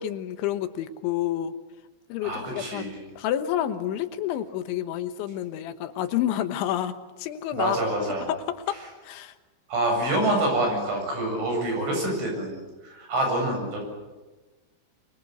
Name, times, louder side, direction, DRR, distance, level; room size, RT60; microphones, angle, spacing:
voice 1, 0.0-1.5 2.1-6.9 7.2-7.8 8.3-9.3, left 11 dB, 85° left, 9 dB, 3.6 m, -29 dB
voice 2, 2.2-3.0 7.5-8.3 9.7-12.6 12.8-13.8, right 1 dB, 85° right, 2 dB, 10.0 m, -26 dB
25.5 x 23.5 x 8.0 m, 1.2 s
omnidirectional pair, 5.3 m